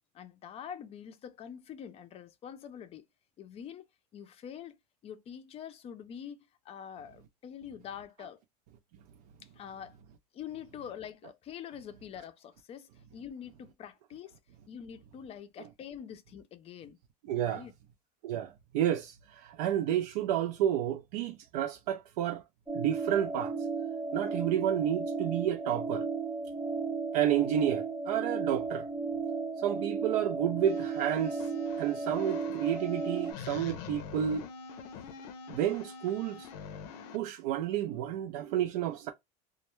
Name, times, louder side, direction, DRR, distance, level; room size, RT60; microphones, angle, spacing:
voice 1, 0.1-3.1 3.4-3.8 4.1-4.8 5.0-6.4 6.7-8.4 9.5-10.0 10.3-14.4 14.7-17.0 17.4-17.7, left 8 dB, 30° left, 0.4 m, -45 dB
voice 2, 17.3-17.6 18.2-22.4 22.7-23.6 24.1-26.0 27.1-28.9 29.6-31.5 31.8-34.5 35.5-36.5 37.1-39.1, right 10 dB, 75° right, 0.4 m, -30 dB
sound 1, 22.7-33.3, right 4 dB, 10° right, 0.8 m, -34 dB
sound 2, 30.7-37.2, left 6 dB, 75° left, 0.5 m, -45 dB
2.2 x 2.1 x 3.0 m
supercardioid pair, 120°, 20 cm